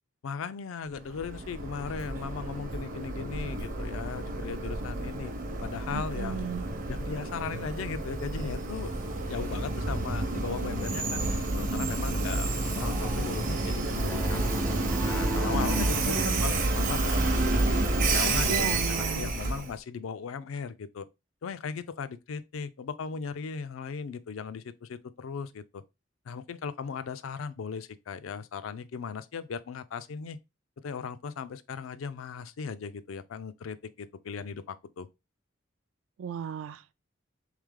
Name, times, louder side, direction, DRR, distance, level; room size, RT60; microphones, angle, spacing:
voice 1, 0.2-5.3 5.6-6.5 6.9-9.0 9.3-14.4 15.0-21.1 21.4-25.8 26.3-30.4 30.8-35.1, left 5 dB, 80° left, 0.4 m, -37 dB
Train, 1.0-19.7, right 2 dB, 45° right, 0.7 m, -30 dB
voice 2, 5.9-6.7 15.5-16.4 18.5-19.3 36.2-36.9, right 7 dB, 75° right, 0.3 m, -35 dB
Piano, 12.8-16.2, right 1 dB, 10° left, 0.3 m, -37 dB
3.5 x 3.2 x 3.6 m
head